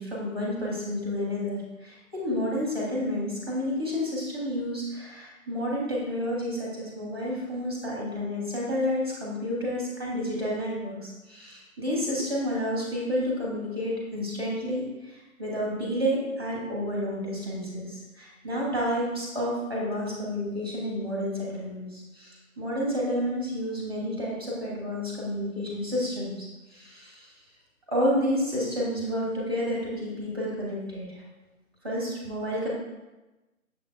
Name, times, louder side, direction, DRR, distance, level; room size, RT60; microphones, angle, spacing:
voice 1, 0.0-27.3 27.9-31.2 31.8-32.7, equal, 20° right, -4 dB, 0.7 m, -30 dB
6.5 x 3.3 x 2.4 m, 1.1 s
figure-of-eight pair, 150°, 42 cm